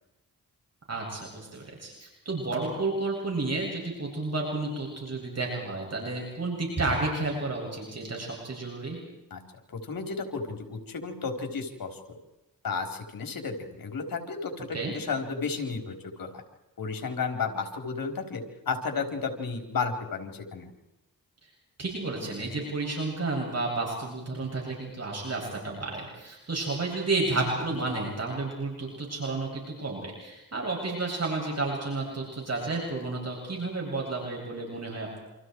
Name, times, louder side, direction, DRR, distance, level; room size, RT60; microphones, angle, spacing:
voice 1, 0.9-9.0 14.7-14.9 21.8-35.2, right 3 dB, 50° right, -2 dB, 7.9 m, -31 dB
voice 2, 9.7-12.2 12.6-16.3 16.8-20.7, left 4 dB, 80° left, 4 dB, 4.3 m, -33 dB
29.0 x 27.0 x 4.8 m, 0.98 s
wide cardioid pair, 80°, 34 cm